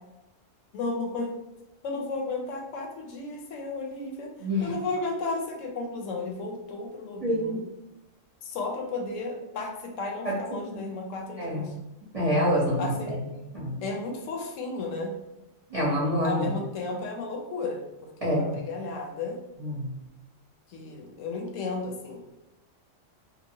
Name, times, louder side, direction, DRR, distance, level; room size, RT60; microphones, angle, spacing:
voice 1, 0.7-1.4 1.8-7.6 8.4-11.7 12.8-13.2 13.8-15.1 16.2-17.8 18.2-19.4 20.7-22.4, left 3 dB, 80° left, 1 dB, 1.0 m, -34 dB
voice 2, 4.4-4.7 7.2-7.5 10.2-10.3 10.7-10.9 11.4-11.7 12.1-13.1 13.5-13.8 15.7-16.5 18.2-18.6 19.6-19.9, equal, 35° right, -7 dB, 0.8 m, -26 dB
2.8 x 2.0 x 2.7 m, 0.94 s
omnidirectional pair, 1.3 m